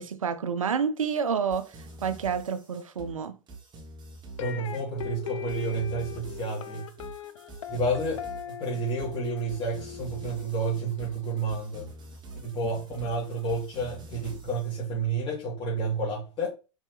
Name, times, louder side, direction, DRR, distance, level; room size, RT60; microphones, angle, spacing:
voice 1, 0.0-1.7 2.0-3.4, right 6 dB, 85° right, 0.6 m, -29 dB
sound 1, 1.5-14.7, right 3 dB, 25° right, 1.1 m, -46 dB
sound 2, 4.4-11.5, left 9 dB, 70° left, 0.5 m, -40 dB
voice 2, 4.4-6.9 7.7-11.9 12.4-16.5, right 2 dB, 30° left, 2.1 m, -30 dB
4.5 x 3.2 x 3.1 m
hypercardioid pair, 100°, 17 cm